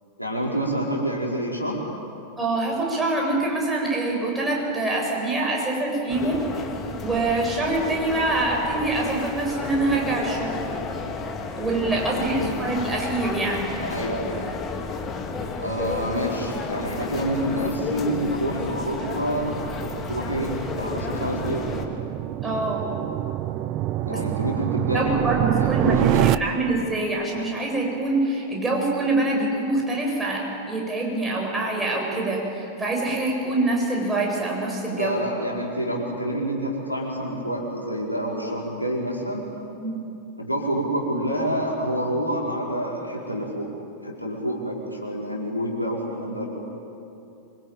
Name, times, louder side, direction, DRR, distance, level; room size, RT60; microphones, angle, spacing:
voice 1, 0.2-1.8 12.4-12.6 13.8-14.4 15.6-19.6 20.1-21.7 24.0-25.2 25.5-26.3 35.0-39.4 40.4-43.7 44.0-46.5, equal, 90° left, -2 dB, 4.9 m, -27 dB
voice 2, 2.4-6.4 7.0-10.6 11.6-13.7 22.4-22.9 24.1-24.2 24.9-35.2 39.8-40.0, right 2 dB, 10° right, -2 dB, 7.6 m, -25 dB
sound 1, 6.1-21.9, left 4 dB, 25° left, 2.8 m, -32 dB
sound 2, 15.3-26.4, right 15 dB, 40° right, 0.6 m, -28 dB
25.5 x 25.0 x 9.2 m, 2.8 s
figure-of-eight pair, 90°, 0 cm